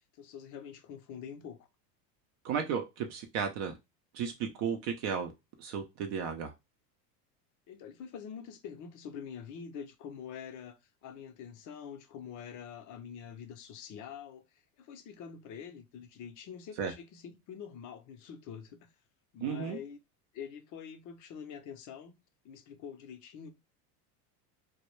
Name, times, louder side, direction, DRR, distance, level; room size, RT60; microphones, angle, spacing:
voice 1, 0.1-1.7 7.7-14.4 14.8-18.9 19.3-20.0 20.3-22.1 22.4-23.5, left 7 dB, 40° left, 0.5 m, -45 dB
voice 2, 2.4-3.7 4.1-5.3 5.6-6.5 16.8-16.9 19.4-19.8, right 7 dB, 55° right, 0.6 m, -34 dB
2.2 x 2.0 x 2.9 m
supercardioid pair, 100°, 47 cm